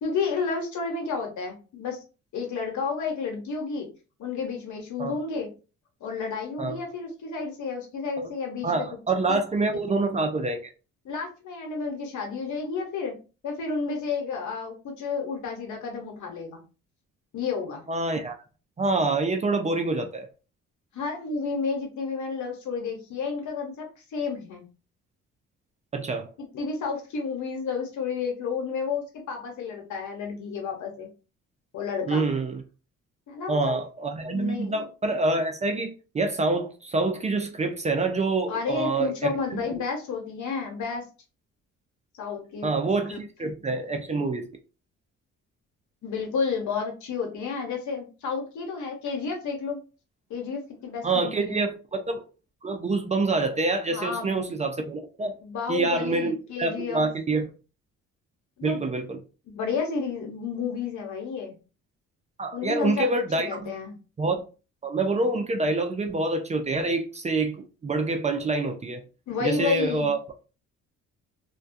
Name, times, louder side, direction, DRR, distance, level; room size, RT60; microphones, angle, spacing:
voice 1, 0.0-2.0 2.3-3.9 4.2-5.5 6.0-8.9 9.3-9.4 11.0-13.2 13.4-16.6 17.3-17.8 20.9-24.7 26.4-31.1 31.7-32.3 33.3-33.7 34.2-34.8 38.5-41.0 42.2-42.7 43.1-43.2 46.0-49.8 50.3-51.6 53.9-54.5 55.4-57.1 58.6-58.8 59.5-61.6 62.5-64.0 69.3-70.1, left 5 dB, 70° left, 1.0 m, -31 dB
voice 2, 8.6-10.6 17.9-18.3 18.8-20.3 25.9-26.3 32.1-32.6 33.5-39.6 42.6-44.5 51.0-52.2 52.6-55.4 55.7-57.5 58.6-59.2 62.4-63.7 64.2-64.4 64.8-69.0 69.4-70.2, right 3 dB, 25° right, 0.4 m, -26 dB
2.2 x 2.2 x 2.5 m
cardioid pair, 90°, 30 cm